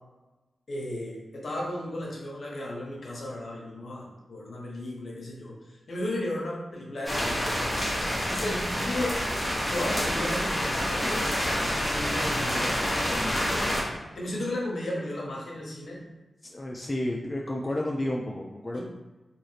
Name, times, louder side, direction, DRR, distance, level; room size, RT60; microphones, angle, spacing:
voice 1, 0.7-7.7 8.2-9.3 9.7-16.0 18.7-18.8, left 1 dB, 65° left, -3 dB, 0.8 m, -35 dB
sound 1, 7.1-13.8, equal, 15° left, 0.7 m, -28 dB
voice 2, 13.2-13.6 16.4-18.8, left 1 dB, 30° left, -1 dB, 0.3 m, -32 dB
2.6 x 2.4 x 3.2 m, 1.1 s
cardioid pair, 50°, 0 cm